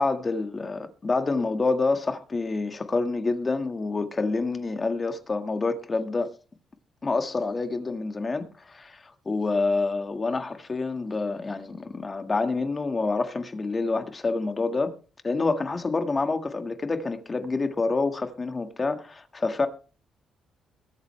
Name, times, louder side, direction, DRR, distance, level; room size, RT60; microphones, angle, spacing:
voice 1, 0.0-6.3 7.0-14.9 15.2-19.7, left 3 dB, 30° left, 1.8 m, -27 dB
22.0 x 8.2 x 3.3 m
cardioid pair, 90°, 0 cm